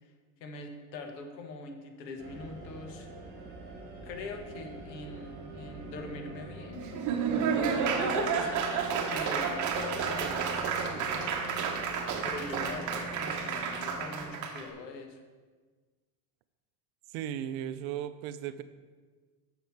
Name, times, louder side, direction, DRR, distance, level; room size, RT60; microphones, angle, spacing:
voice 1, 0.4-3.1 4.0-6.9 7.9-11.7 12.2-15.2, left 3 dB, 85° left, 4 dB, 1.4 m, -42 dB
sound 1, 2.2-14.3, right 1 dB, 20° right, 2.3 m, -44 dB
Laughter / Applause, 6.8-14.6, right 6 dB, 35° right, 1.0 m, -31 dB
voice 2, 17.1-18.6, right 10 dB, 55° right, 13 dB, 0.5 m, -36 dB
7.0 x 6.8 x 4.5 m, 1.4 s
supercardioid pair, 125°, 50 cm